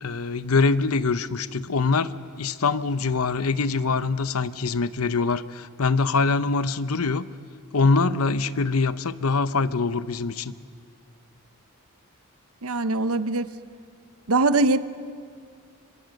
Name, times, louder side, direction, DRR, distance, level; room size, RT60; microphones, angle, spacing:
voice 1, 0.0-7.3 7.7-10.5, left 4 dB, 75° left, 14 dB, 0.8 m, -24 dB
voice 2, 12.6-13.5 14.3-14.8, right 2 dB, 75° right, 12 dB, 0.9 m, -22 dB
29.5 x 25.0 x 6.6 m, 2.2 s
head